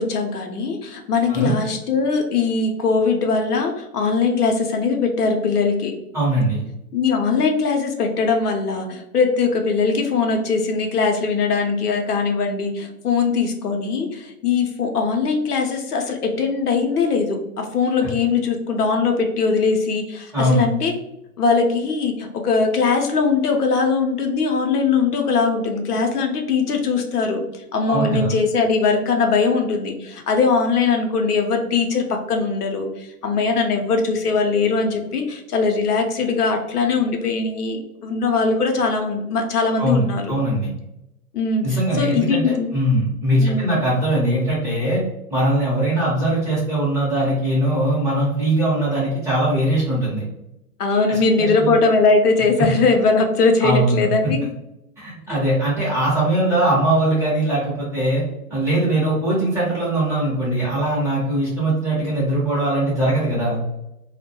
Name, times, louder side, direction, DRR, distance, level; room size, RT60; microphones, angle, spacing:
voice 1, 0.0-5.9 6.9-20.9 21.4-40.2 41.3-42.8 43.4-43.8 50.8-54.5, left 4 dB, 80° left, 3 dB, 0.7 m, -21 dB
voice 2, 6.1-6.6 20.3-20.6 27.9-28.3 39.8-40.7 41.6-45.0 45.3-50.2 51.1-51.7 52.6-52.7 53.6-54.3 55.0-58.2 58.5-63.6, right 1 dB, 5° right, -8 dB, 0.6 m, -21 dB
2.1 x 2.1 x 2.8 m, 0.86 s
hypercardioid pair, 120°, 45 cm